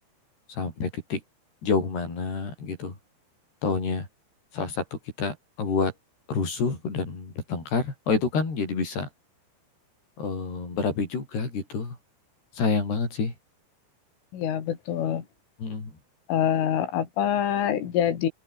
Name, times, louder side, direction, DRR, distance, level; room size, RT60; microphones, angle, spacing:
voice 1, 0.5-1.2 1.6-3.0 3.6-4.1 4.5-5.9 6.3-9.1 10.2-12.0 12.6-13.3 15.6-15.9, left 4 dB, 55° left, 9.0 m, -28 dB
voice 2, 14.3-15.3 16.3-18.3, left 10 dB, 90° left, 5.5 m, -25 dB
omnidirectional pair, 5.5 m